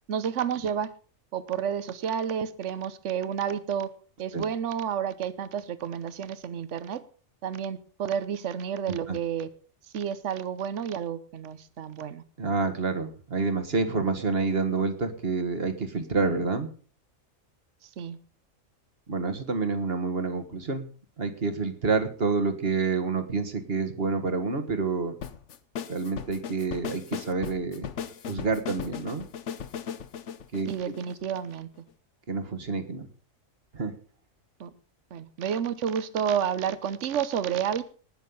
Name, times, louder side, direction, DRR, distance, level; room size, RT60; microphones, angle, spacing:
voice 1, 0.1-0.9 1.3-3.9 4.2-7.0 7.4-9.5 9.9-12.2 18.0-18.2 30.7-31.7 34.6-34.7 35.1-37.8, right 8 dB, 65° right, 14 dB, 1.2 m, -30 dB
voice 2, 12.4-16.7 19.1-20.9 21.2-25.1 25.9-27.9 28.3-29.3 30.5-30.9 32.3-33.1 33.7-33.9, right 4 dB, 45° right, 7 dB, 1.8 m, -28 dB
sound 1, 25.2-31.5, left 8 dB, 65° left, 1.1 m, -37 dB
19.0 x 6.5 x 5.5 m, 0.41 s
omnidirectional pair, 1.4 m